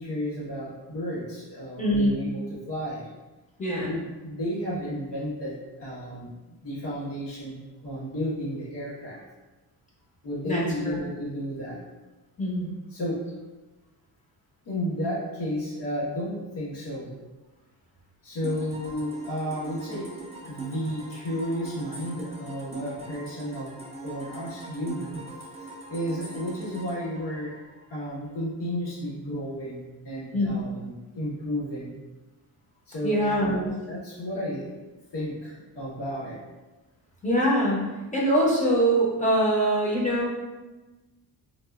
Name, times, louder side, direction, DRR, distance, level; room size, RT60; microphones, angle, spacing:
voice 1, 0.0-3.1 3.8-9.2 10.2-11.8 12.9-13.2 14.6-17.2 18.2-20.1 20.4-23.8 24.0-25.2 25.9-27.6 27.9-32.0 32.9-36.4, equal, 85° left, -7 dB, 1.4 m, -32 dB
voice 2, 1.8-2.2 3.6-3.9 10.4-11.0 12.4-12.7 30.3-30.6 33.0-33.7 37.2-37.8 38.1-40.3, right 1 dB, 20° left, -4 dB, 0.7 m, -23 dB
sound 1, 18.4-28.1, right 3 dB, 15° right, 0.4 m, -42 dB
3.9 x 2.4 x 2.4 m, 1.1 s
wide cardioid pair, 160°, 41 cm